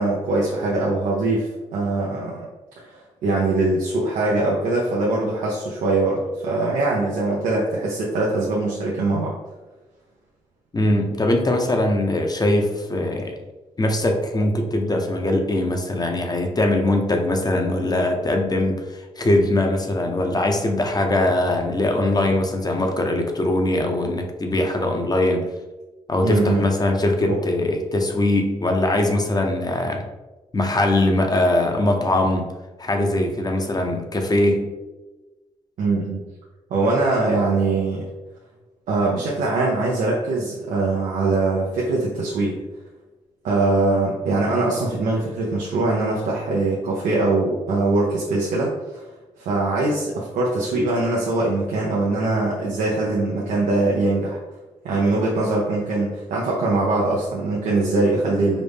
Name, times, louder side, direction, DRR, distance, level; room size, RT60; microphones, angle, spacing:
voice 1, 0.0-2.4 2.8-9.3 26.2-26.6 27.2-27.4 35.8-36.2 36.7-38.1 38.9-42.6 43.4-49.0 49.4-54.4 54.8-58.6, right 2 dB, 85° right, -3 dB, 0.6 m, -22 dB
voice 2, 10.7-13.3 13.8-25.5 26.1-30.0 30.5-32.5 32.8-34.7, left 1 dB, 30° left, 3 dB, 0.7 m, -21 dB
5.1 x 2.0 x 3.3 m, 1.2 s
supercardioid pair, 55°, 13 cm